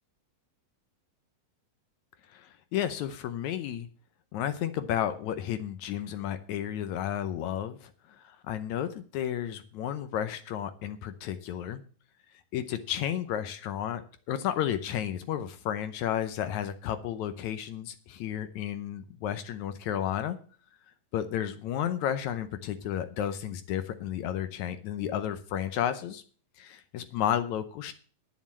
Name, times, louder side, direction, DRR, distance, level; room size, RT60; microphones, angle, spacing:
voice 1, 2.3-3.9 4.3-11.8 12.5-14.0 14.3-20.4 21.1-26.2 26.6-27.9, left 10 dB, 75° left, 10 dB, 1.8 m, -32 dB
10.5 x 7.4 x 7.3 m, 0.42 s
omnidirectional pair, 4.0 m